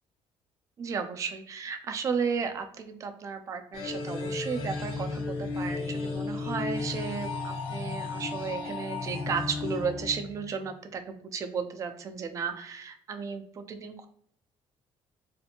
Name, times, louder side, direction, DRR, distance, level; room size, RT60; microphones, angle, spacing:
voice 1, 0.8-14.1, right 6 dB, 30° right, 8 dB, 0.3 m, -34 dB
sound 1, 3.7-10.7, left 3 dB, 65° left, 0.5 m, -34 dB
2.5 x 2.5 x 2.7 m, 0.63 s
cardioid pair, 165°, 10 cm